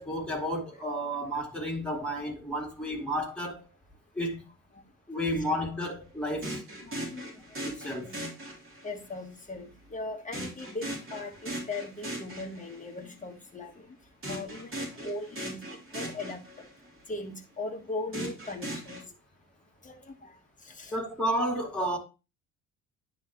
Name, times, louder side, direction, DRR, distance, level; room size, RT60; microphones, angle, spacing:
voice 1, 0.0-3.6 4.1-4.4 5.1-6.6 7.6-8.1 20.9-22.0, equal, ahead, 2.5 m, -31 dB
sound 1, 6.4-9.1 10.3-12.9 14.2-16.9 18.1-19.0, right 1 dB, 30° right, 3.2 m, -39 dB
voice 2, 6.8-7.3 8.0-8.2 8.8-13.9 14.3-15.6 15.9-16.4 17.1-19.0 19.8-20.3 20.6-21.0, left 3 dB, 20° left, 1.5 m, -39 dB
9.7 x 3.9 x 3.0 m
figure-of-eight pair, 55°, 43 cm